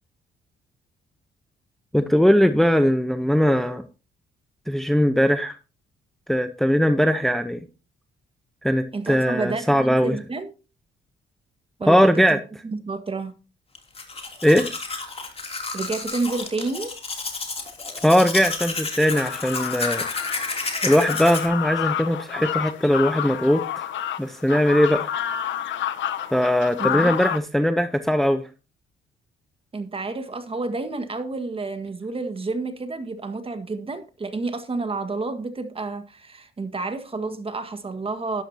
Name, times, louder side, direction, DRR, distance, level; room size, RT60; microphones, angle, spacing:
voice 1, 1.9-3.8 4.7-5.6 6.3-7.6 8.6-10.2 11.9-12.4 14.4-14.7 18.0-20.0 20.8-23.9 24.2-25.1 26.3-28.4, equal, ahead, 0.9 m, -20 dB
voice 2, 8.9-10.5 11.8-13.3 15.7-16.9 26.8-27.1 29.7-38.4, right 3 dB, 30° right, 1.8 m, -30 dB
Domestic sounds home sounds, 13.8-21.5, left 3 dB, 30° left, 3.1 m, -31 dB
sound 1, 19.1-27.4, left 10 dB, 70° left, 1.0 m, -29 dB
12.5 x 11.5 x 2.9 m
cardioid pair, 90°, 20 cm